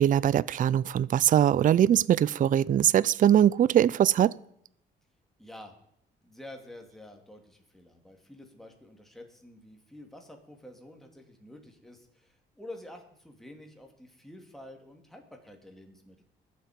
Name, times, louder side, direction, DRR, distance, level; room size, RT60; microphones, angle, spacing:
voice 1, 0.0-4.4, right 10 dB, 40° right, 0.4 m, -22 dB
voice 2, 5.4-5.8 6.2-16.2, left 1 dB, ahead, 2.6 m, -49 dB
21.5 x 7.6 x 5.2 m
cardioid pair, 90°, 20 cm